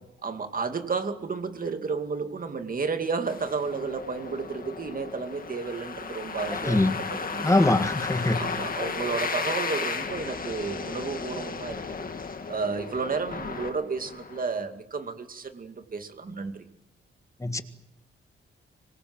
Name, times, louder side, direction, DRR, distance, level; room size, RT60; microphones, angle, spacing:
voice 1, 0.2-7.8 8.4-12.1 12.5-16.6, right 4 dB, 45° right, 7 dB, 2.4 m, -32 dB
sound 1, 3.3-14.4, left 5 dB, 45° left, 2.0 m, -34 dB
voice 2, 6.6-7.0 7.4-8.4 17.4-17.6, left 2 dB, 15° left, 9 dB, 1.7 m, -22 dB
25.5 x 22.5 x 7.9 m, 0.85 s
wide cardioid pair, 135°, 21 cm